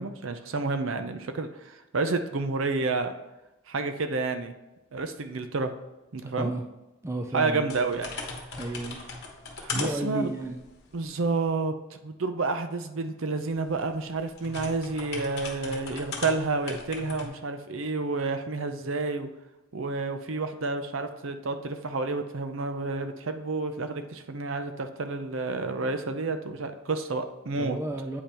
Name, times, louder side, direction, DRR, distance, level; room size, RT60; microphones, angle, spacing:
voice 1, 0.0-3.1 3.7-4.5 4.9-5.7 6.1-6.5 7.3-8.1 9.6-10.3 10.9-19.3 19.7-27.8, right 3 dB, 60° right, 8 dB, 0.6 m, -30 dB
voice 2, 6.2-6.6 7.0-7.6 8.6-9.0 9.7-10.6 27.6-28.2, right 1 dB, 15° right, 3 dB, 0.4 m, -32 dB
sound 1, 7.7-11.5 13.5-17.3, left 3 dB, 50° left, 1.2 m, -38 dB
8.3 x 5.3 x 3.0 m, 1.0 s
head